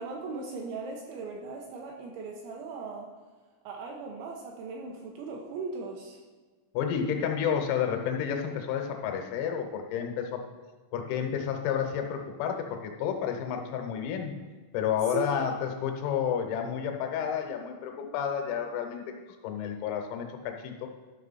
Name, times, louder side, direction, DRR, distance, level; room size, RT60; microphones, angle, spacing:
voice 1, 0.0-3.1 3.6-6.2 15.1-15.5, right 4 dB, 80° right, 0 dB, 2.8 m, -38 dB
voice 2, 6.8-10.4 10.9-14.4 14.7-20.9, left 8 dB, 85° left, 4 dB, 3.7 m, -31 dB
13.0 x 5.5 x 4.1 m, 1.3 s
omnidirectional pair, 6.0 m